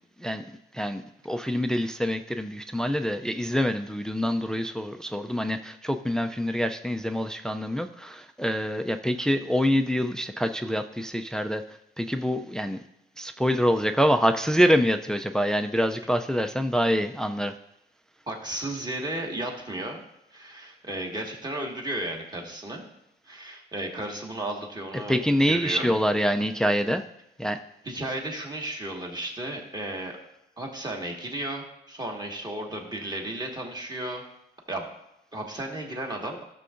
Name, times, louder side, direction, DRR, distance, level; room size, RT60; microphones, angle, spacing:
voice 1, 0.7-11.6 12.0-12.8 13.2-17.5 25.1-27.0 27.4-27.6, equal, 5° left, 8 dB, 0.4 m, -25 dB
voice 2, 18.3-20.0 20.3-22.8 23.2-25.2 25.5-25.9 27.8-30.2 30.6-34.2 34.7-34.9 35.3-36.4, right 1 dB, 20° right, 0 dB, 1.8 m, -34 dB
12.5 x 6.7 x 2.6 m, 0.83 s
cardioid pair, 90°, 20 cm